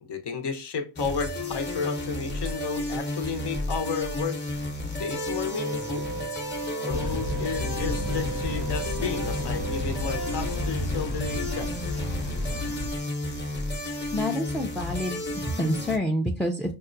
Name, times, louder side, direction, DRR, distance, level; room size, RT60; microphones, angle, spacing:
voice 1, 0.0-4.4 4.9-6.0 6.8-11.7, left 5 dB, 70° left, 0.8 m, -32 dB
sound 1, 1.0-16.0, left 1 dB, 25° left, 0.8 m, -32 dB
sound 2, 5.0-10.6, right 3 dB, 65° right, 0.5 m, -37 dB
sound 3, 6.9-12.9, left 2 dB, 90° left, 1.0 m, -32 dB
voice 2, 14.1-16.7, equal, ahead, 0.4 m, -28 dB
5.4 x 2.1 x 2.6 m
cardioid pair, 70°, 43 cm